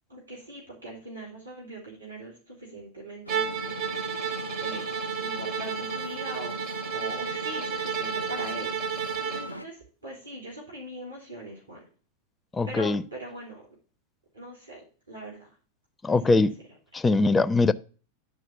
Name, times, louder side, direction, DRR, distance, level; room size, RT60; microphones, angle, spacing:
voice 1, 0.1-4.0 4.6-4.8 5.2-11.8 12.7-13.7 14.3-15.5 16.1-16.5, right 1 dB, 80° right, 3.3 m, -42 dB
sound 1, 3.3-9.7, equal, 85° left, 0.5 m, -39 dB
Bowed string instrument, 3.3-9.5, right 7 dB, 40° right, 1.0 m, -32 dB
voice 2, 12.5-13.0 16.0-16.6 16.9-17.7, left 3 dB, 15° left, 0.4 m, -22 dB
9.9 x 4.7 x 6.9 m
figure-of-eight pair, 90°, 0 cm